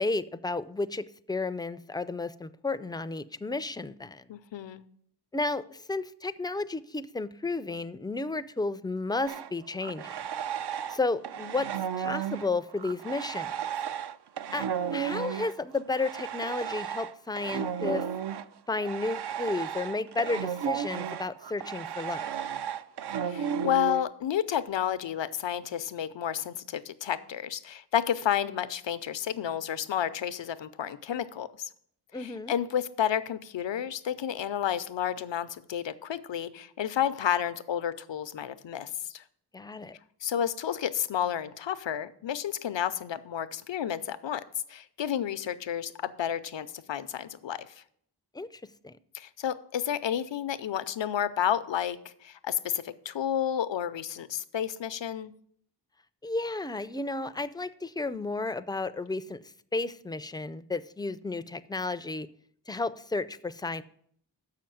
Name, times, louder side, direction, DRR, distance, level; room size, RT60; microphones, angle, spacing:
voice 1, 0.0-4.3 5.3-10.3 10.9-13.6 14.5-14.7 14.9-18.0 18.7-22.3 32.1-32.5 39.5-40.0 48.3-49.0 56.2-59.4 59.7-62.3 62.7-63.8, left 3 dB, 10° left, 13 dB, 0.4 m, -32 dB
voice 2, 4.3-4.8 23.2-31.7 32.1-39.2 40.2-44.4 44.7-47.8 49.1-55.3, left 9 dB, 85° left, 13 dB, 0.6 m, -31 dB
sound 1, 9.3-11.0 11.2-24.0, right 8 dB, 65° right, 0.5 m, -34 dB
7.1 x 5.8 x 7.6 m, 0.64 s
wide cardioid pair, 65°, 43 cm